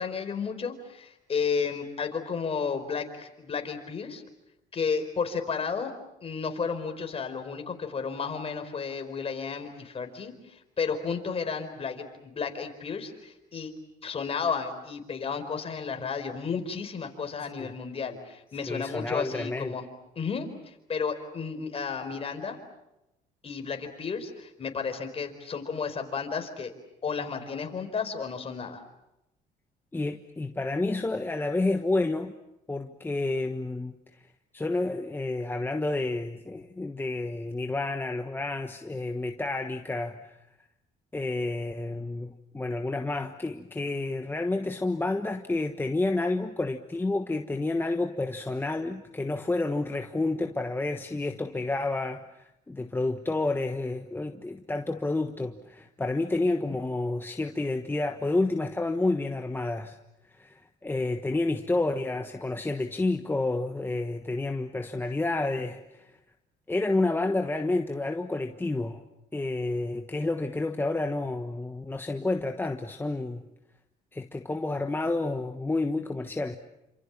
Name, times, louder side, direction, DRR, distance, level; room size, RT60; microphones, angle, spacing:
voice 1, 0.0-4.2 4.7-5.9 6.2-13.7 14.0-19.8 20.2-22.6 23.4-26.7 27.0-28.8, left 5 dB, 35° left, 6 dB, 4.6 m, -32 dB
voice 2, 18.7-19.8 29.9-32.3 32.7-34.0 34.5-40.3 41.1-42.3 42.5-60.0 60.4-66.1 66.7-69.0 69.3-73.4 74.1-76.6, left 2 dB, 10° left, 5 dB, 1.3 m, -30 dB
29.0 x 27.0 x 7.3 m, 0.91 s
cardioid pair, 110°, 17 cm